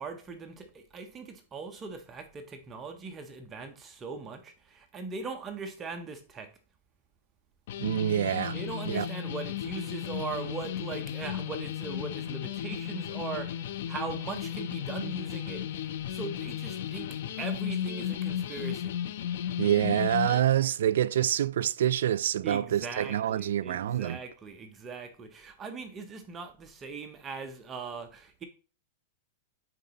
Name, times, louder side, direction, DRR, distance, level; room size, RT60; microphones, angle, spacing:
voice 1, 0.0-6.5 8.5-15.8 16.1-19.0 22.4-28.4, right 4 dB, 15° right, 0.5 m, -40 dB
sound 1, 7.7-20.4, left 10 dB, 60° left, 0.4 m, -35 dB
voice 2, 7.8-8.6 8.9-9.1 19.6-24.2, right 11 dB, 80° right, 0.3 m, -26 dB
9.1 x 3.8 x 2.8 m
supercardioid pair, 165°, 0 cm